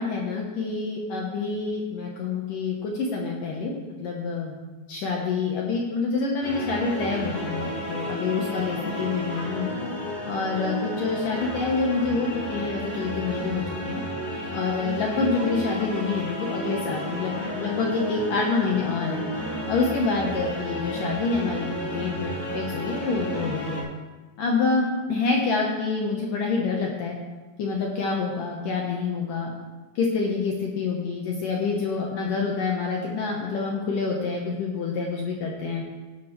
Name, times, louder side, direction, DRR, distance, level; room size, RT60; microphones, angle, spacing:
voice 1, 0.0-3.7 4.0-4.5 4.9-9.7 10.2-14.0 14.5-19.2 19.7-23.8 24.4-27.2 27.6-29.5 30.0-35.8, left 4 dB, 70° left, -1 dB, 2.1 m, -27 dB
sound 1, 6.4-23.8, equal, 50° left, 5.5 m, -32 dB
17.0 x 11.5 x 3.3 m, 1.3 s
omnidirectional pair, 5.1 m